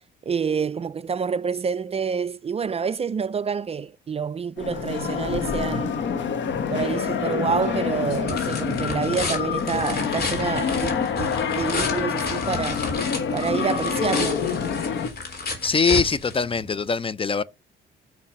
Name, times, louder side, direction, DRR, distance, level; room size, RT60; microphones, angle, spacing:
voice 1, 0.2-6.0 6.7-12.9 13.3-14.4, right 6 dB, 30° right, 0.4 m, -27 dB
sound 1, 4.6-15.1, left 6 dB, 70° left, 1.4 m, -27 dB
sound 2, 7.4-16.9, left 3 dB, 55° left, 3.4 m, -33 dB
voice 2, 15.6-17.4, left 5 dB, 25° left, 0.4 m, -22 dB
6.2 x 5.8 x 5.8 m
cardioid pair, 90°, 20 cm